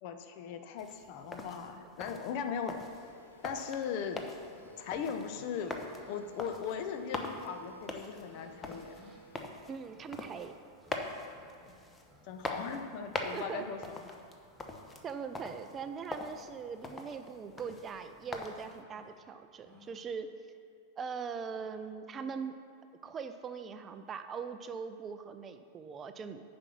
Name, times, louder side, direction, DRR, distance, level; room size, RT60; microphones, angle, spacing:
voice 1, 0.0-2.8 3.4-4.2 4.8-5.7 6.1-9.1 12.2-14.0, left 7 dB, 45° left, 7 dB, 0.8 m, -38 dB
sound 1, 0.8-18.8, left 2 dB, 15° left, 0.8 m, -44 dB
sound 2, 2.5-9.4, left 2 dB, 75° left, 0.9 m, -57 dB
sound 3, 3.9-20.0, equal, 10° right, 1.8 m, -61 dB
voice 2, 9.7-10.5 13.3-13.7 15.0-20.3 21.0-22.5 23.0-26.4, right 6 dB, 25° right, 9 dB, 0.4 m, -41 dB
9.7 x 5.2 x 5.9 m, 2.4 s
figure-of-eight pair, 90°, 0 cm